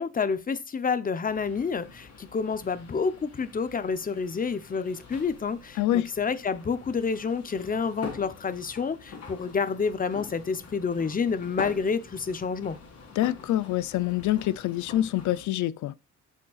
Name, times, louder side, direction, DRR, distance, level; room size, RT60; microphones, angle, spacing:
voice 1, 0.0-12.8, left 5 dB, 30° left, 0.7 m, -29 dB
sound 1, 1.2-15.5, left 5 dB, 55° left, 2.4 m, -46 dB
voice 2, 5.8-6.1 13.2-15.9, left 13 dB, 75° left, 0.5 m, -26 dB
7.6 x 5.2 x 2.4 m
cardioid pair, 90°, 30 cm